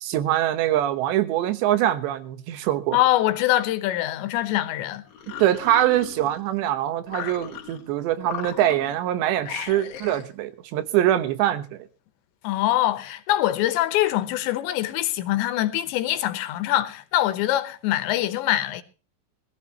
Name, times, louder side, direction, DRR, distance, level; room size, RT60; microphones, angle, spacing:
voice 1, 0.0-3.0 5.4-11.9, right 12 dB, 80° right, 3.4 m, -23 dB
voice 2, 2.9-5.0 12.4-18.8, left 14 dB, 85° left, 3.3 m, -23 dB
sound 1, 5.1-6.6 7.1-7.9 8.2-9.0 9.4-10.3, left 10 dB, 60° left, 3.1 m, -37 dB
21.0 x 14.5 x 3.0 m
omnidirectional pair, 5.0 m